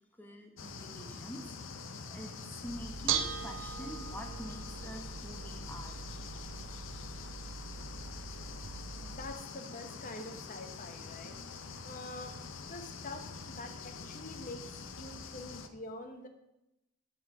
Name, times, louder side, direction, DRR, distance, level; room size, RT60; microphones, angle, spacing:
voice 1, 0.2-6.1, equal, 10° left, 3 dB, 0.9 m, -46 dB
sound 1, 0.6-15.7, left 5 dB, 75° left, 0.7 m, -45 dB
Bell / Dishes pots and pans, 2.7-9.3, right 7 dB, 65° right, 0.5 m, -40 dB
voice 2, 9.0-11.3 11.8-16.3, left 2 dB, 40° left, 6 dB, 1.0 m, -46 dB
8.0 x 5.5 x 6.0 m, 0.89 s
head